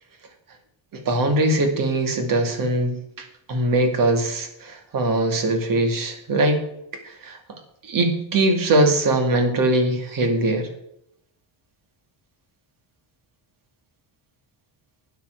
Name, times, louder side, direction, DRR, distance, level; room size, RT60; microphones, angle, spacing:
voice 1, 0.9-6.7 7.0-7.4 7.8-10.7, right 1 dB, 45° right, 5 dB, 2.3 m, -21 dB
13.0 x 9.4 x 4.7 m, 0.79 s
cardioid pair, 170°, 46 cm